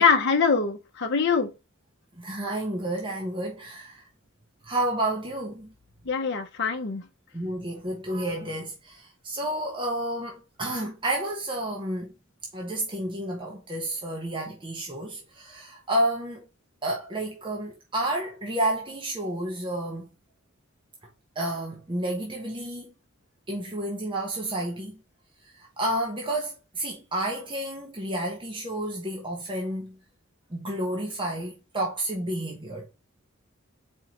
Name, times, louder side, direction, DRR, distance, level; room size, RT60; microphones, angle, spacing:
voice 1, 0.0-1.5 6.1-7.0, left 5 dB, 55° left, 0.7 m, -23 dB
voice 2, 2.2-4.1 4.6-5.7 7.3-12.1 12.5-16.5 16.8-20.1 21.3-22.9 23.5-25.0 25.4-30.0 30.5-32.9, right 1 dB, 25° right, 1.0 m, -30 dB
4.4 x 3.8 x 2.9 m
head